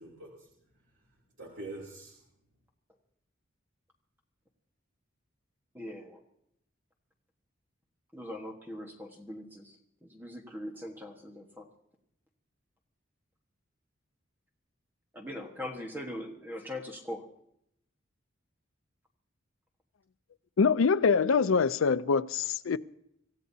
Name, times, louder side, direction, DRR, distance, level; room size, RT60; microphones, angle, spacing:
voice 1, 0.0-2.2, right 2 dB, 85° right, 3.0 m, -46 dB
voice 2, 5.7-6.2 8.1-9.8 10.0-11.7 15.1-17.2, left 1 dB, 10° right, 1.4 m, -41 dB
voice 3, 20.6-22.8, left 5 dB, 85° left, 0.5 m, -24 dB
25.5 x 15.5 x 2.8 m
head